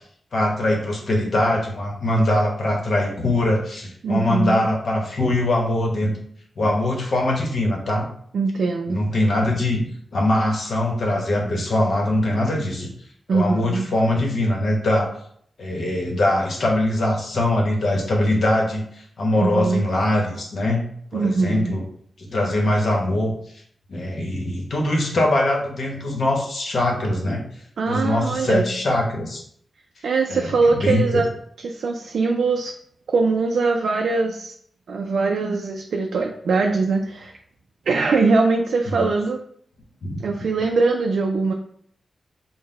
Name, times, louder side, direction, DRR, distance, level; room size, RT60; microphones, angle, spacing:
voice 1, 0.3-6.1 6.6-8.0 8.9-9.9 10.1-12.9 13.3-15.1 15.6-18.8 19.2-20.8 21.1-21.8 22.2-23.3 23.9-27.4 27.9-29.4 30.3-30.5 30.8-31.2 38.9-39.0 40.0-40.2, left 1 dB, 65° left, 0 dB, 0.9 m, -22 dB
voice 2, 4.0-4.6 8.3-9.0 13.3-13.9 19.3-19.8 21.1-21.7 27.8-28.7 30.0-31.3 31.6-32.7 33.1-34.5 34.9-37.4 37.9-39.4 40.2-41.5, right 4 dB, 85° right, 2 dB, 0.3 m, -22 dB
3.9 x 2.1 x 3.9 m, 0.64 s
wide cardioid pair, 120°, 0 cm